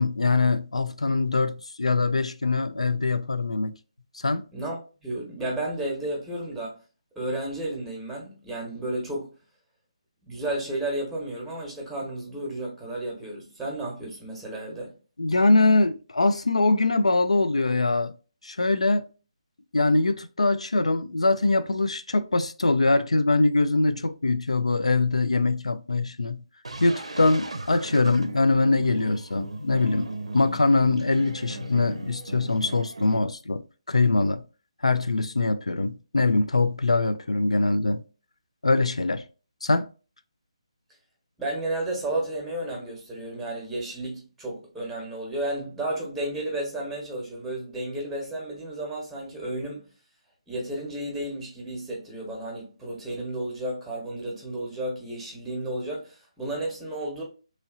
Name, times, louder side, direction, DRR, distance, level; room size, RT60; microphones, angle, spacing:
voice 1, 0.0-3.7 4.2-4.4 15.2-18.1 18.4-19.1 19.7-26.4 26.8-34.4 34.8-38.0 38.6-39.2 39.6-39.9, left 3 dB, 80° left, 0.3 m, -23 dB
voice 2, 4.5-6.8 7.1-9.3 10.3-14.9 41.4-49.9 50.5-57.2, right 1 dB, 5° right, 1.0 m, -32 dB
sound 1, 26.6-33.2, right 2 dB, 75° right, 0.5 m, -38 dB
3.0 x 2.6 x 2.4 m
figure-of-eight pair, 145°, 3 cm